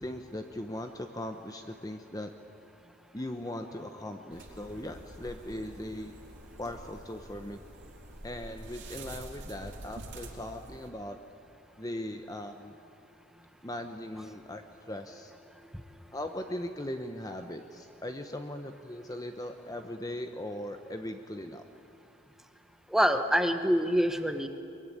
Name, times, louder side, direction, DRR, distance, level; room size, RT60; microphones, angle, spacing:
voice 1, 0.0-2.3 3.1-6.2 6.6-7.6 8.2-11.2 11.8-12.7 13.6-15.3 16.1-21.6, left 1 dB, 15° left, 6 dB, 0.8 m, -39 dB
sound 1, 4.3-10.9, right 1 dB, 55° right, 3.5 m, -47 dB
voice 2, 22.9-24.5, equal, ahead, 7 dB, 1.1 m, -25 dB
24.0 x 22.0 x 10.0 m, 2.7 s
head